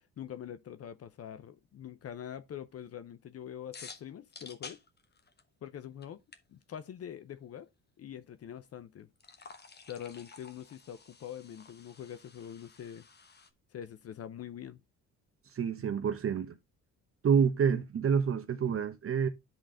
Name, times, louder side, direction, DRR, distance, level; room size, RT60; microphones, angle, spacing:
voice 1, 0.2-4.8 5.6-6.2 6.5-7.7 8.0-9.1 9.9-13.0 13.7-14.8, left 9 dB, 50° left, 0.7 m, -44 dB
sound 1, 3.7-5.7 6.0-6.1 6.3-6.4 9.2-13.5, left 5 dB, 30° left, 1.1 m, -51 dB
voice 2, 15.5-16.6 17.2-19.3, right 7 dB, 45° right, 1.0 m, -28 dB
10.5 x 3.9 x 3.7 m
cardioid pair, 105°, 32 cm